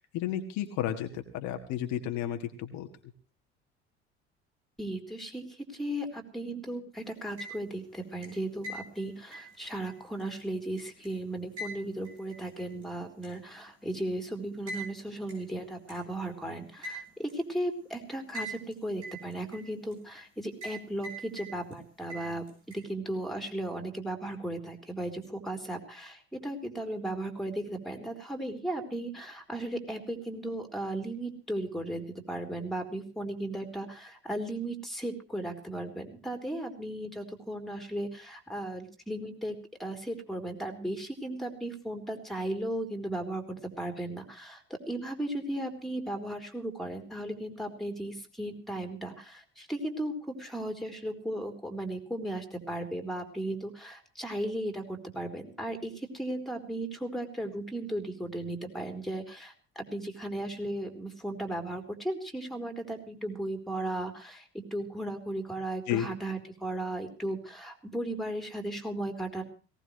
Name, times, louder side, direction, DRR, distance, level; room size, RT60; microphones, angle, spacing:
voice 1, 0.1-2.9 65.9-66.1, left 11 dB, 60° left, 5 dB, 1.8 m, -32 dB
voice 2, 4.8-69.4, right 1 dB, ahead, 5 dB, 3.7 m, -36 dB
sound 1, 7.2-7.8 8.2-11.1 11.6-12.8 13.2-13.3 14.7-14.9 15.3-15.4 15.9-16.0 16.8-17.4 18.3-18.7 19.0-19.9 20.6-20.8 21.0-21.8 22.1-22.8, right 1 dB, 80° right, 6.6 m, -41 dB
19.0 x 18.0 x 3.2 m, 0.38 s
figure-of-eight pair, 60°, 33 cm